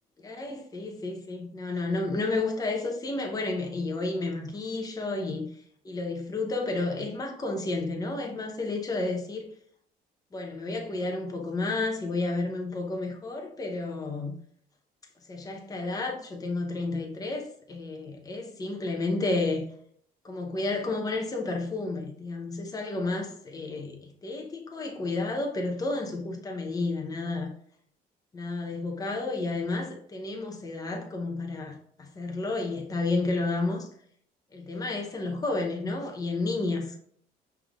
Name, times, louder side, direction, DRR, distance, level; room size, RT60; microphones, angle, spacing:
voice 1, 0.2-5.5 5.8-9.5 10.3-14.3 15.3-19.6 20.2-27.5 28.3-33.9 34.5-37.0, left 3 dB, 20° left, 0.9 m, -31 dB
5.5 x 3.4 x 2.5 m
cardioid pair, 110°, 17 cm